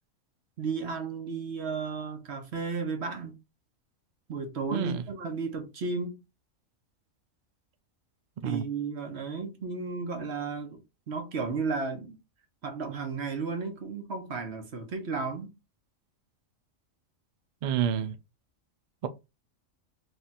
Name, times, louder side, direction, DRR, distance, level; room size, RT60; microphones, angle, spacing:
voice 1, 0.6-3.4 4.3-6.2 8.4-12.2 12.6-15.5, right 4 dB, 55° right, 1.1 m, -34 dB
voice 2, 4.7-5.0 8.4-8.6 17.6-18.1, right 8 dB, 90° right, 0.4 m, -29 dB
3.3 x 2.4 x 4.1 m
omnidirectional pair, 1.4 m